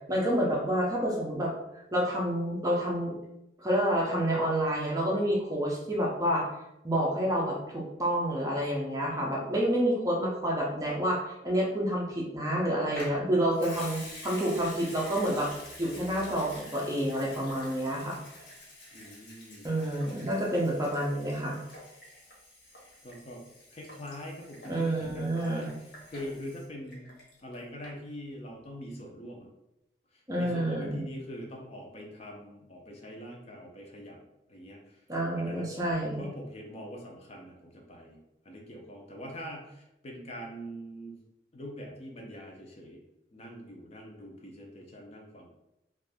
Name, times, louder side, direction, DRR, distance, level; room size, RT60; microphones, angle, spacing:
voice 1, 0.1-1.5 1.9-3.1 3.6-6.5 6.8-15.5 15.8-18.2 19.6-21.6 24.7-25.7 30.3-31.0 35.1-36.2, right 1 dB, 20° right, -2 dB, 0.5 m, -28 dB
Water tap faucet / Sink (filling or washing) / Liquid, 12.9-27.5 27.8-27.9, left 1 dB, 70° left, 1.0 m, -47 dB
voice 2, 18.9-19.7 23.0-23.4 23.7-27.1 27.4-29.5 30.1-34.2 34.5-35.0 35.4-38.2 38.4-41.2 41.5-43.0 43.3-45.5, equal, 35° left, 0 dB, 0.5 m, -43 dB
2.6 x 2.4 x 3.4 m, 0.88 s
head